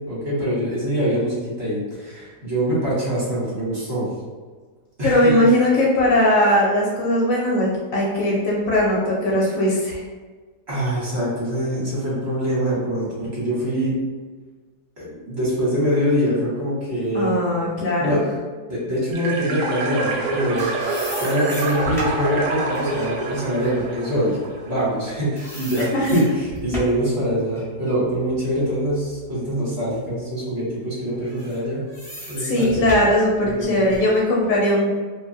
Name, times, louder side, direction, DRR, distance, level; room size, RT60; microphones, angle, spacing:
voice 1, 0.1-4.1 5.0-5.4 10.7-13.9 15.0-17.4 18.0-18.2 18.7-20.7 21.1-24.4 24.6-31.9 32.3-32.9 33.4-34.0, equal, 45° right, -8 dB, 1.1 m, -24 dB
voice 2, 5.0-10.0 17.1-18.2 25.9-26.2 32.4-35.0, left 1 dB, 70° left, -3 dB, 0.9 m, -19 dB
sound 1, 19.1-24.9, right 3 dB, 75° right, 1.0 m, -27 dB
sound 2, 20.1-25.0 25.4-27.1 27.5-29.5 30.0-30.1 31.1-34.2, equal, 5° left, 0.3 m, -37 dB
2.7 x 2.5 x 2.5 m, 1.4 s
omnidirectional pair, 1.7 m